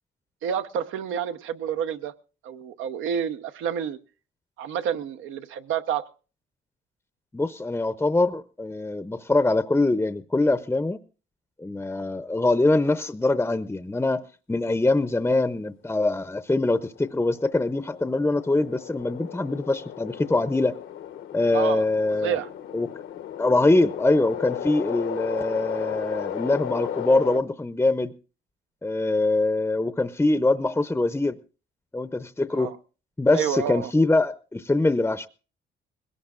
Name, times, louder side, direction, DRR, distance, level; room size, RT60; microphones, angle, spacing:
voice 1, 0.4-2.1 2.4-4.0 4.6-6.0 21.5-21.8 22.2-22.5 32.5-32.8 33.3-33.9, right 8 dB, 85° right, 0.9 m, -29 dB
voice 2, 7.3-11.0 11.6-14.2 14.5-20.8 21.3-22.4 22.7-22.9 23.4-28.1 28.8-31.4 31.9-32.7 33.2-35.3, left 2 dB, 10° left, 0.6 m, -23 dB
sound 1, 16.6-27.4, left 10 dB, 80° left, 1.0 m, -35 dB
21.0 x 17.5 x 2.5 m
cardioid pair, 90°, 20 cm